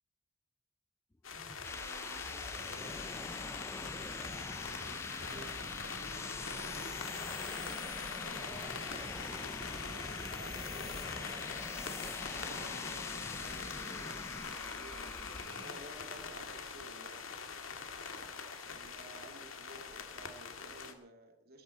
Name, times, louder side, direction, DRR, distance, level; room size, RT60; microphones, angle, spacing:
sound 1, 1.2-20.9, left 5 dB, 90° left, 1.9 m, -43 dB
sound 2, 1.4-15.9, left 3 dB, 15° left, 0.4 m, -44 dB
voice 1, 1.6-7.1 8.1-11.5 12.2-14.2 14.6-17.3 18.6-21.6, right 2 dB, 50° right, 4 dB, 2.5 m, -55 dB
17.5 x 15.0 x 4.3 m, 0.75 s
head